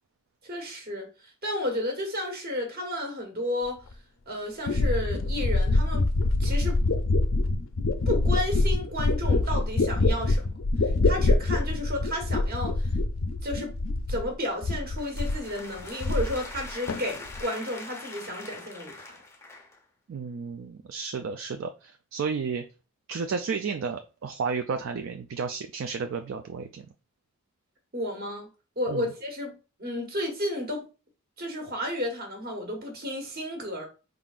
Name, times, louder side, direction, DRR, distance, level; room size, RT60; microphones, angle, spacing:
voice 1, 0.4-3.8 4.3-6.1 6.4-6.8 8.1-10.5 10.8-12.9 13.4-13.7 14.1-19.1 27.9-28.5 28.8-30.9 31.4-33.9, left 1 dB, 45° right, 1.4 m, -32 dB
sound 1, 3.9-4.0 4.7-14.3 14.6-15.5 15.8-16.6 16.9-17.4, left 2 dB, 60° left, 0.5 m, -25 dB
sound 2, 14.7-19.8, left 2 dB, 10° left, 0.5 m, -43 dB
voice 2, 20.1-22.6 23.1-26.9 28.9-29.1, right 5 dB, 60° right, 0.3 m, -32 dB
4.6 x 3.8 x 2.4 m
head